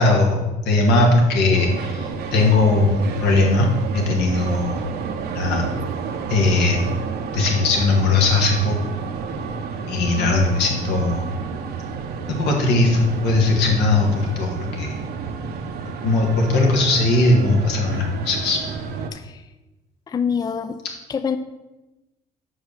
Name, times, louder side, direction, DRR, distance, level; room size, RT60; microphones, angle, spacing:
voice 1, 0.0-3.7 3.9-4.8 5.3-5.7 6.3-6.8 7.3-8.9 9.9-11.2 12.3-15.0 16.0-18.6, left 2 dB, 85° left, 1 dB, 1.7 m, -19 dB
sound 1, 1.5-19.1, right 5 dB, 70° right, 0.8 m, -30 dB
voice 2, 19.1-19.5 20.1-20.8 21.1-21.4, left 6 dB, 25° left, 10 dB, 0.4 m, -26 dB
5.5 x 4.9 x 6.4 m, 1.0 s
cardioid pair, 110°, 17 cm